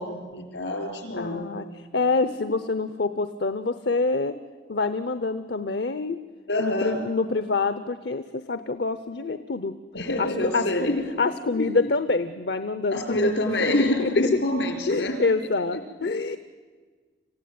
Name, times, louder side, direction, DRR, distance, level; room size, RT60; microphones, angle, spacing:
voice 1, 0.0-1.4 6.5-7.0 9.9-11.1 11.5-11.9 12.9-15.2 15.7-15.8, left 1 dB, 85° left, 4 dB, 4.9 m, -26 dB
voice 2, 1.1-1.7 1.9-4.3 4.7-6.2 6.6-9.8 10.2-10.3 10.5-10.9 11.2-13.3 14.0-14.3 14.9-16.4, left 3 dB, 70° left, 12 dB, 0.8 m, -26 dB
26.0 x 16.0 x 9.4 m, 1.5 s
head